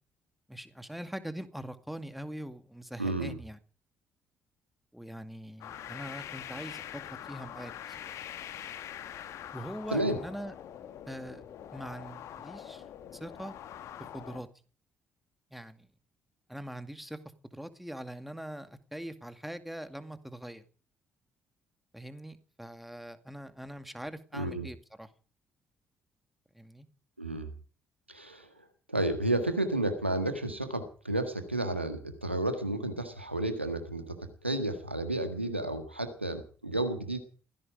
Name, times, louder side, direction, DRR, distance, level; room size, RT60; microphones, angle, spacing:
voice 1, 0.5-3.6 4.9-7.0 7.3-7.7 9.5-10.5 11.1-11.4 11.7-12.8 13.1-13.5 14.1-14.5 15.5-15.9 16.5-17.2 17.5-20.6 21.9-25.1 26.5-26.9, equal, ahead, 9 dB, 2.2 m, -42 dB
voice 2, 3.0-3.4 9.9-10.2 24.3-24.7 27.2-27.5 28.1-37.2, right 1 dB, 90° right, 8 dB, 1.6 m, -32 dB
sound 1, 5.6-14.4, left 10 dB, 55° left, 1.6 m, -44 dB
17.5 x 15.5 x 4.9 m, 0.41 s
figure-of-eight pair, 45°, 6 cm